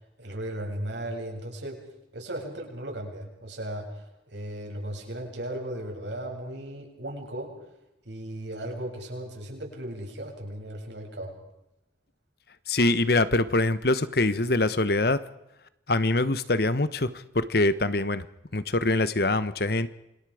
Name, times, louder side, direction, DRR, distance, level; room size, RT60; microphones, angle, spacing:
voice 1, 0.2-1.8 2.1-7.5 8.0-11.3, right 1 dB, 75° right, 1 dB, 7.8 m, -36 dB
voice 2, 12.7-15.2 15.9-17.1 17.3-18.2 18.5-19.9, left 2 dB, 55° left, 14 dB, 1.2 m, -24 dB
29.0 x 26.5 x 5.1 m, 0.90 s
head